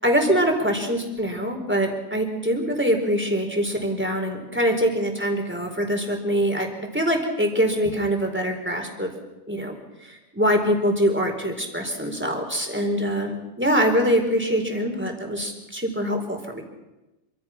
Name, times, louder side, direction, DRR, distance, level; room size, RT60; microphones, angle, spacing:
voice 1, 0.0-9.1 9.5-16.6, equal, 10° right, 3 dB, 4.4 m, -24 dB
27.0 x 25.5 x 6.1 m, 1.0 s
omnidirectional pair, 1.1 m